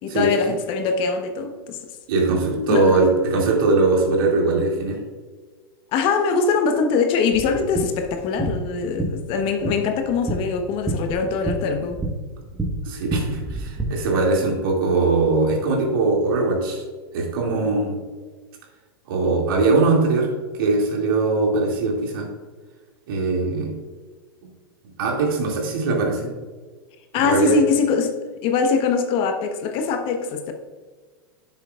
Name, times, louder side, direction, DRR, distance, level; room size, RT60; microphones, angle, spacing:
voice 1, 0.0-1.8 2.7-3.0 5.9-12.0 27.1-28.1 28.4-30.5, left 5 dB, 45° left, 1.1 m, -22 dB
voice 2, 2.1-5.0 12.8-16.8 17.1-18.0 19.1-20.3 20.6-22.3 23.1-23.7 25.0-26.3 27.1-27.6, right 3 dB, 65° right, 2.4 m, -21 dB
sound 1, 7.3-13.9, right 2 dB, 10° right, 1.4 m, -29 dB
10.5 x 7.1 x 2.4 m
hypercardioid pair, 100°, 13 cm